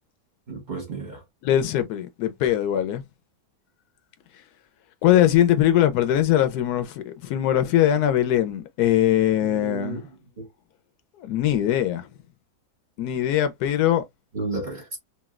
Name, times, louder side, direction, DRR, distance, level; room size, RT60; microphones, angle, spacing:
voice 1, 0.5-1.2 9.4-10.0 10.4-10.5 14.3-14.9, right 3 dB, 35° right, 0.9 m, -32 dB
voice 2, 1.4-3.0 5.0-10.0 11.2-12.1 13.0-14.0, left 12 dB, 80° left, 1.2 m, -21 dB
3.1 x 2.6 x 2.3 m
omnidirectional pair, 1.6 m